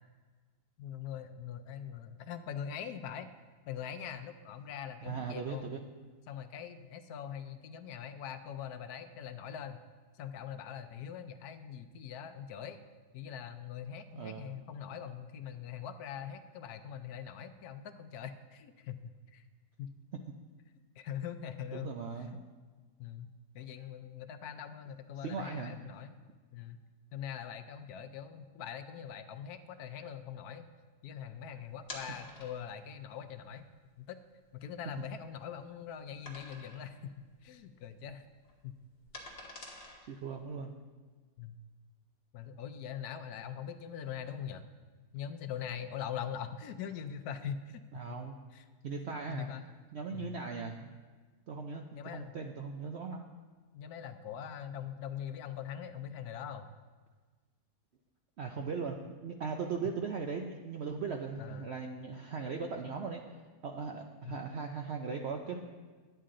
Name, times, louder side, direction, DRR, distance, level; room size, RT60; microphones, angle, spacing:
voice 1, 0.8-3.3 3.7-5.7 6.3-9.8 10.1-12.8 13.1-19.4 19.8-19.9 21.0-22.0 23.0-26.1 26.5-26.8 27.1-30.7 31.0-33.7 34.0-34.2 34.5-38.2 38.6-38.8 41.4-41.6 42.3-44.6 45.1-47.8 48.5-48.6 49.3-49.6 50.1-50.4 51.9-52.3 53.7-56.7 61.4-61.7 64.2-64.4, left 8 dB, 75° left, 9 dB, 1.1 m, -42 dB
voice 2, 5.0-5.8 14.1-14.5 21.7-22.4 25.2-25.8 40.0-40.8 47.9-48.4 48.8-50.9 51.5-53.2 58.4-65.6, right 5 dB, 70° right, 3 dB, 0.6 m, -39 dB
sound 1, 31.8-32.8 33.5-33.6 34.1-34.2 34.6-35.6 36.2-37.0 37.3-37.5 37.8-40.4, left 2 dB, 35° left, 1.4 m, -48 dB
10.0 x 9.2 x 3.8 m, 1.4 s
omnidirectional pair, 1.7 m